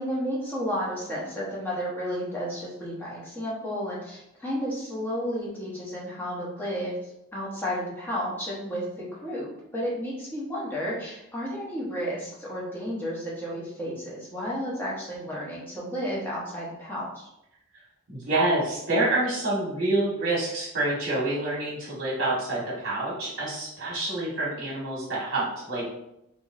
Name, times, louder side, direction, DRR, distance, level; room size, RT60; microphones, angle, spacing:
voice 1, 0.0-17.3, equal, 10° left, -6 dB, 0.8 m, -32 dB
voice 2, 18.1-25.9, right 2 dB, 55° right, -7 dB, 1.1 m, -27 dB
2.9 x 2.9 x 2.4 m, 0.83 s
head